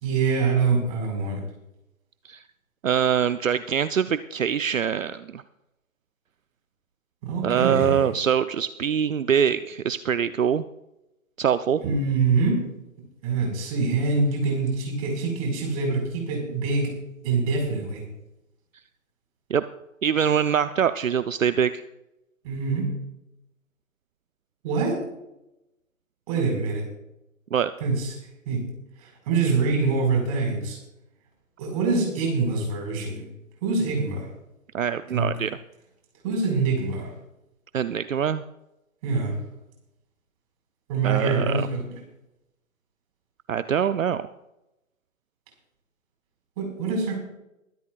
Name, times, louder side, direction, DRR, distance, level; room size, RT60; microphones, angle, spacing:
voice 1, 0.0-1.4 7.2-8.1 11.8-12.7 13.2-17.0 17.2-18.0 22.4-22.9 24.6-25.0 26.3-26.8 27.8-28.1 28.4-28.7 29.3-30.8 31.6-33.2 33.6-34.3 35.1-35.3 36.2-37.1 39.0-39.4 40.9-41.8 46.6-47.2, right 4 dB, 25° right, 0 dB, 4.6 m, -25 dB
voice 2, 2.8-5.4 7.4-10.6 11.4-11.8 19.5-19.7 20.0-21.8 27.5-27.7 34.7-35.6 37.7-38.4 41.0-41.7 43.5-44.3, right 8 dB, 70° right, 12 dB, 0.7 m, -24 dB
23.0 x 12.0 x 2.3 m, 0.89 s
figure-of-eight pair, 145°, 41 cm